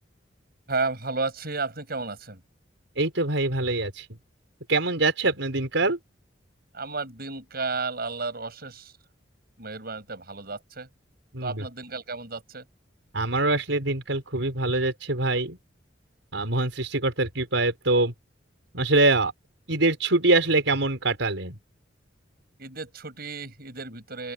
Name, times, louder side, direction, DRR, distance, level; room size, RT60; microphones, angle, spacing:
voice 1, 0.7-2.4 6.7-8.9 9.6-10.9 11.4-12.6 22.6-24.3, right 3 dB, 55° right, 7.8 m, -33 dB
voice 2, 3.0-4.1 4.7-6.0 11.3-11.6 13.1-15.6 16.3-18.1 18.7-19.3 19.7-21.6, right 2 dB, 85° right, 5.2 m, -24 dB
open air
head